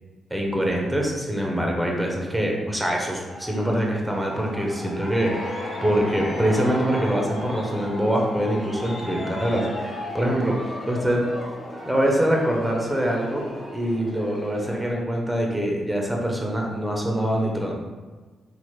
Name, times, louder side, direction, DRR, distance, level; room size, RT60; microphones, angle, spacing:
voice 1, 0.3-10.6 10.9-11.3 11.9-13.4 13.7-17.7, right 1 dB, 5° right, -1 dB, 0.7 m, -24 dB
Aircraft, 3.3-14.9, equal, 25° left, 1.3 m, -38 dB
sound 1, 5.1-13.9, left 3 dB, 75° left, 0.4 m, -38 dB
2.9 x 2.1 x 3.1 m, 1.4 s
cardioid pair, 60°, 0 cm